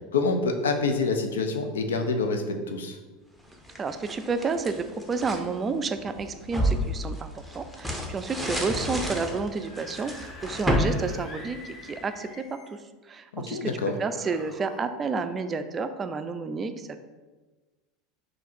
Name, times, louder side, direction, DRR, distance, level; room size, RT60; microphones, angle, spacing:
voice 1, 0.1-3.0 13.3-13.9, left 3 dB, 90° left, 6 dB, 0.4 m, -27 dB
sound 1, 3.5-5.5 6.0-12.0, equal, ahead, 0.7 m, -30 dB
voice 2, 3.8-12.8 13.1-13.7 14.0-17.0, right 4 dB, 30° right, 9 dB, 0.3 m, -30 dB
Screaming / Screech, 9.6-12.8 13.8-14.9, left 2 dB, 35° left, 0.7 m, -46 dB
3.7 x 2.6 x 4.3 m, 1.2 s
hypercardioid pair, 90°, 0 cm